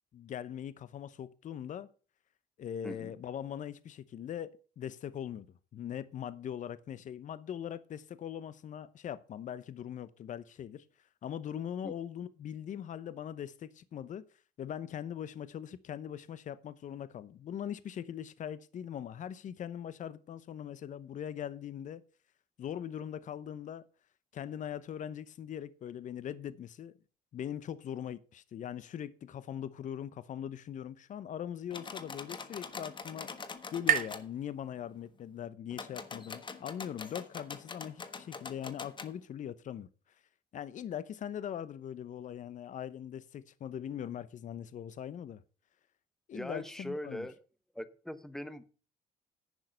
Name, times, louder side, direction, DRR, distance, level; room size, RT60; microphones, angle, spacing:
voice 1, 0.1-1.9 2.6-5.5 5.7-10.8 11.2-14.2 14.6-22.0 22.6-23.8 24.3-26.9 27.3-33.3 33.7-39.9 40.5-45.4 46.3-47.3, left 9 dB, 50° left, 0.8 m, -41 dB
sound 1, 31.5-35.3, right 9 dB, 55° right, 1.0 m, -37 dB
sound 2, 31.7-34.2 35.7-39.1, left 5 dB, 30° left, 1.3 m, -44 dB
voice 2, 46.3-47.4 47.7-48.6, left 1 dB, ahead, 1.0 m, -41 dB
10.5 x 6.5 x 6.4 m
cardioid pair, 110°, 17 cm